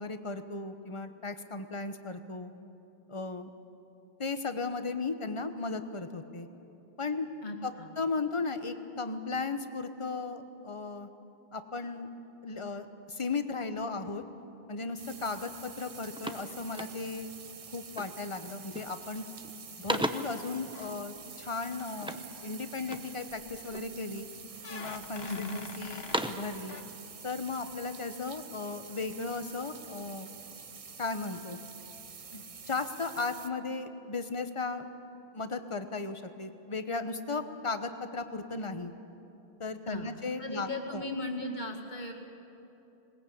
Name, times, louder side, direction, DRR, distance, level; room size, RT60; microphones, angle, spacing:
voice 1, 0.0-2.5 3.1-3.5 4.2-6.5 7.0-7.3 7.6-7.7 8.0-11.1 11.5-12.1 12.4-14.2 14.7-17.3 17.7-19.2 19.8-24.3 24.7-26.8 27.2-30.3 31.0-31.6 32.3-34.8 35.3-38.9 39.6-41.0, left 3 dB, 30° left, 9 dB, 1.0 m, -36 dB
voice 2, 7.4-7.9 25.2-25.6 39.9-42.1, left 2 dB, 45° left, 1 dB, 2.3 m, -37 dB
sound 1, 15.0-33.5, right 6 dB, 40° right, 0.7 m, -48 dB
sound 2, 15.3-15.5 15.8-17.3 17.9-18.3 18.6-19.1 19.4-20.5 22.0-23.2 23.7-24.3 24.9-25.5 25.9-26.6, right 1 dB, 5° right, 0.7 m, -37 dB
sound 3, 20.7-21.3 21.6-21.9 23.3-23.9 24.6-26.4 26.7-26.8, left 5 dB, 85° left, 1.2 m, -46 dB
20.5 x 19.5 x 8.6 m, 3.0 s
omnidirectional pair, 1.0 m